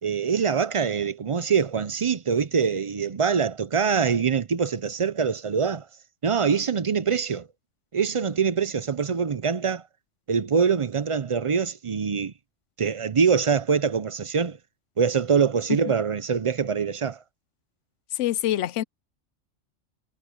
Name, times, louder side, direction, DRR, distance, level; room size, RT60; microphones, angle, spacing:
voice 1, 0.0-5.9 6.2-7.5 7.9-9.8 10.3-12.3 12.8-14.6 15.0-17.2, right 6 dB, 45° right, 0.4 m, -24 dB
voice 2, 18.1-18.8, left 13 dB, 75° left, 0.9 m, -25 dB
omnidirectional pair, 1.3 m